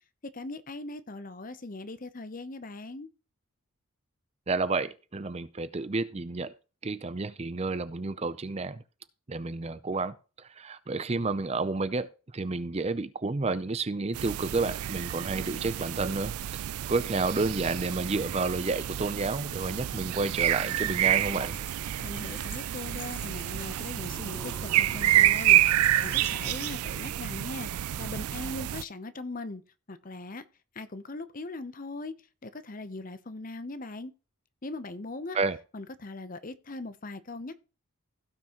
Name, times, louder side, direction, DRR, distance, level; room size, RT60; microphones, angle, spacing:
voice 1, 0.3-3.1 22.0-25.6 26.0-29.6 29.9-30.4 30.7-32.1 32.4-34.1 34.6-35.4 35.7-37.5, left 2 dB, 40° left, 0.8 m, -40 dB
voice 2, 4.5-6.5 6.8-8.8 9.3-12.1 12.3-21.6 35.3-35.6, right 3 dB, 30° right, 0.5 m, -30 dB
sound 1, 14.1-28.8, right 13 dB, 90° right, 0.4 m, -28 dB
sound 2, 20.2-26.7, equal, 15° left, 3.2 m, -45 dB
16.5 x 6.0 x 3.0 m
head